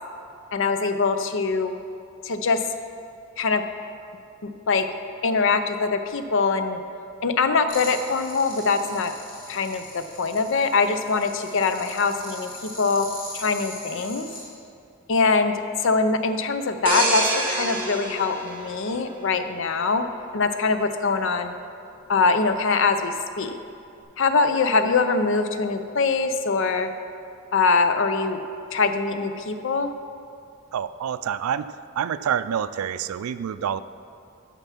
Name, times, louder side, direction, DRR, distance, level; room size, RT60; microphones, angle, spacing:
voice 1, 0.5-1.7 2.2-2.6 3.4-3.6 4.4-4.9 5.2-6.8 7.2-9.1 9.5-13.1 13.3-14.3 15.1-15.5 15.8-20.1 20.3-21.5 22.1-23.6 24.2-26.9 27.5-28.4 28.7-29.9, left 4 dB, 65° left, 9 dB, 0.5 m, -23 dB
sound 1, 7.7-14.5, left 2 dB, 45° left, 1.9 m, -40 dB
sound 2, 16.9-19.5 20.0-20.2, right 2 dB, 25° right, 1.6 m, -27 dB
voice 2, 30.7-33.8, right 8 dB, 85° right, 14 dB, 0.3 m, -27 dB
9.0 x 6.0 x 5.8 m, 2.5 s
head